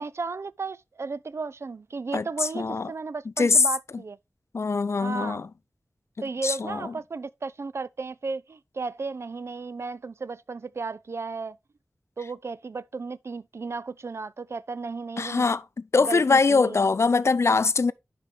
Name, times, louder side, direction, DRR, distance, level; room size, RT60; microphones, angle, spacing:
voice 1, 0.0-4.2 5.0-5.4 6.2-11.6 12.2-15.5 16.1-16.8, right 4 dB, 60° right, 0.4 m, -34 dB
voice 2, 2.1-2.9 3.4-3.7 4.5-5.5 6.4-6.9 15.2-15.6 15.9-17.9, left 4 dB, 65° left, 0.4 m, -22 dB
11.0 x 5.2 x 3.2 m
wide cardioid pair, 70°, 5 cm